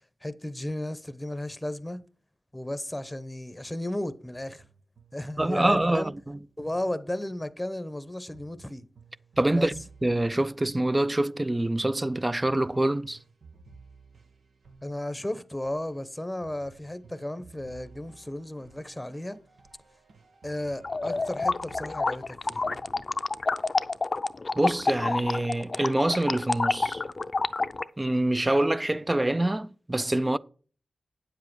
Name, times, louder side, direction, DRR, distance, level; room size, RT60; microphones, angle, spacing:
voice 1, 0.2-2.0 2.5-4.6 5.1-6.1 6.6-8.8 9.5-9.7 14.8-19.4 20.4-22.6, left 1 dB, 10° left, 0.9 m, -34 dB
sound 1, 4.3-7.4 8.3-23.0, right 4 dB, 90° right, 1.2 m, -55 dB
voice 2, 5.4-6.4 9.4-13.2 24.6-27.0 28.0-30.4, right 1 dB, 20° right, 0.4 m, -25 dB
sound 2, 20.8-27.9, left 3 dB, 45° left, 0.5 m, -28 dB
9.3 x 7.5 x 4.6 m
wide cardioid pair, 80°, 0 cm